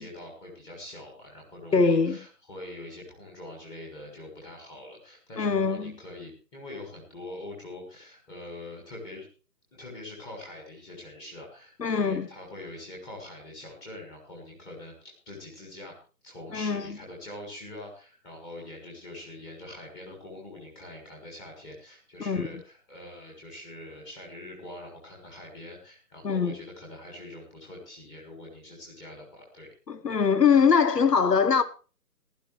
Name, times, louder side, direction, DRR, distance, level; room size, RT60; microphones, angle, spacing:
voice 1, 0.0-9.3 9.7-15.9 16.2-29.7, left 1 dB, 10° left, 1.6 m, -44 dB
voice 2, 1.7-2.2 5.4-5.9 11.8-12.3 16.5-16.8 22.2-22.5 26.2-26.6 29.9-31.6, left 5 dB, 85° left, 1.1 m, -22 dB
15.0 x 11.5 x 3.1 m
figure-of-eight pair, 155°, 47 cm